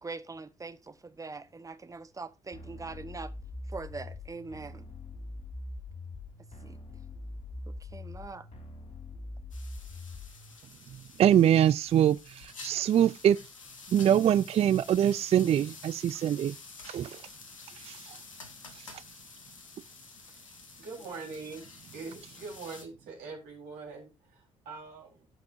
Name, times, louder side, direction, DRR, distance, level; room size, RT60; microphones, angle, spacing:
voice 1, 0.0-3.3 3.7-4.9 6.6-6.8 7.9-8.4, right 3 dB, 20° right, 0.9 m, -42 dB
sound 1, 2.5-10.5, left 2 dB, 40° left, 2.2 m, -43 dB
sound 2, 9.5-22.8, left 4 dB, 90° left, 1.0 m, -49 dB
voice 2, 11.2-13.4 13.9-16.5 16.8-17.2 17.8-18.2 18.7-19.0, right 10 dB, 40° right, 0.4 m, -24 dB
voice 3, 20.2-21.7 21.9-25.3, right 4 dB, 70° right, 3.9 m, -43 dB
15.0 x 5.9 x 2.6 m
figure-of-eight pair, 45°, 16 cm